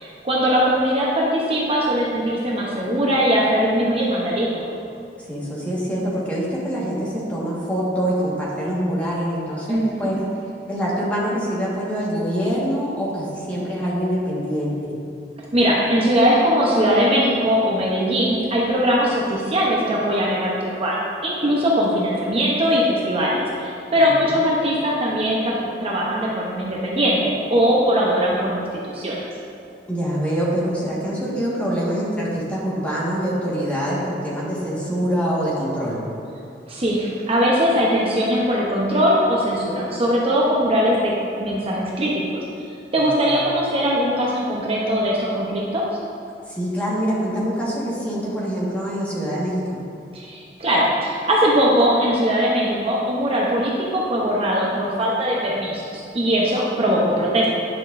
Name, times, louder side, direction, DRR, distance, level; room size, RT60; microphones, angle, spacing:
voice 1, 0.2-4.7 9.7-10.1 15.5-21.0 21.2-28.6 28.9-29.2 36.7-41.1 41.4-42.2 42.9-45.9 50.1-57.5, equal, 35° right, -4 dB, 0.7 m, -20 dB
voice 2, 5.2-10.2 10.7-14.9 24.0-24.1 29.9-36.0 43.0-43.2 46.5-49.8, equal, 10° left, -7 dB, 1.5 m, -25 dB
9.8 x 5.9 x 2.5 m, 2.5 s
head